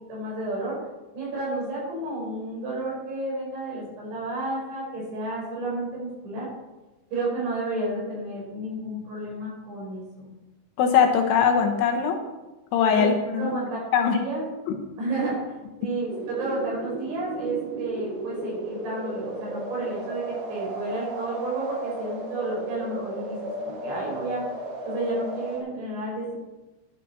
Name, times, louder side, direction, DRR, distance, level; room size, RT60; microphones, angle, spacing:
voice 1, 0.1-0.8 1.1-6.5 7.1-10.3 13.0-14.5 15.0-15.4 15.8-23.4 23.6-24.4 24.8-26.3, right 2 dB, 80° right, -5 dB, 6.9 m, -31 dB
voice 2, 10.8-12.2 12.7-13.5 13.9-14.2, left 7 dB, 75° left, 4 dB, 3.0 m, -21 dB
sound 1, 16.1-25.6, right 1 dB, 60° right, 3.2 m, -35 dB
11.0 x 11.0 x 4.2 m, 1.1 s
omnidirectional pair, 5.0 m